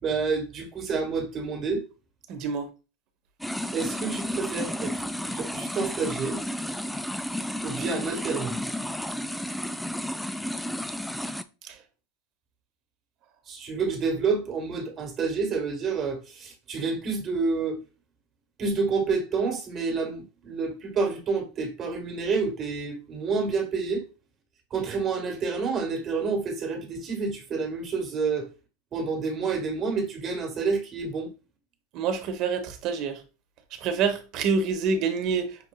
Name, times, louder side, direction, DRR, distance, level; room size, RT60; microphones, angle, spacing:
voice 1, 0.0-1.8 3.7-6.4 7.6-8.5 13.5-17.8 18.6-24.0 24.7-28.5 28.9-31.3, right 4 dB, 35° right, 1.4 m, -29 dB
voice 2, 2.3-2.7 31.9-33.2 33.8-35.7, right 5 dB, 55° right, 0.9 m, -27 dB
sound 1, 3.4-11.4, equal, ahead, 0.3 m, -32 dB
5.8 x 2.6 x 2.2 m
hypercardioid pair, 105°, 0 cm